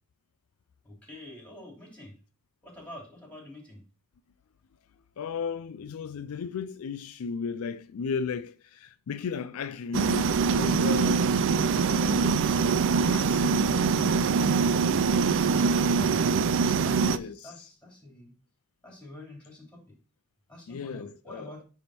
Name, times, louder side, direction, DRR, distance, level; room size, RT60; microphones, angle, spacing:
voice 1, 0.8-2.1 2.6-3.8 15.4-18.3 18.8-19.8 20.5-21.6, left 1 dB, 5° left, 3.2 m, -47 dB
voice 2, 5.2-11.3 11.9-12.6 13.1-14.2 15.6-16.1 17.0-17.5 20.7-21.5, left 6 dB, 70° left, 0.4 m, -35 dB
sound 1, 9.9-17.2, right 5 dB, 60° right, 0.4 m, -24 dB
9.3 x 3.5 x 4.3 m
head